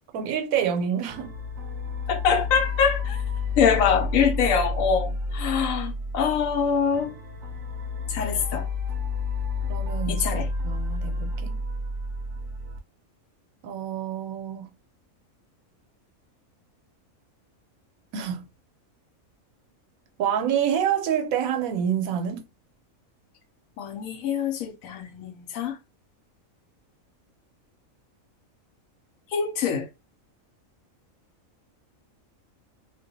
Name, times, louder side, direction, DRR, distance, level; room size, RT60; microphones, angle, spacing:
voice 1, 0.1-1.3 9.7-11.6 13.6-14.7 18.1-18.4 20.2-22.4, right 8 dB, 90° right, 1.0 m, -27 dB
sound 1, 1.1-12.8, left 3 dB, 65° right, 0.8 m, -30 dB
voice 2, 2.1-3.2 3.6-7.1 8.1-8.7 10.1-10.5 23.8-25.8 29.3-29.9, left 6 dB, 75° left, 1.0 m, -24 dB
2.4 x 2.2 x 2.6 m
omnidirectional pair, 1.5 m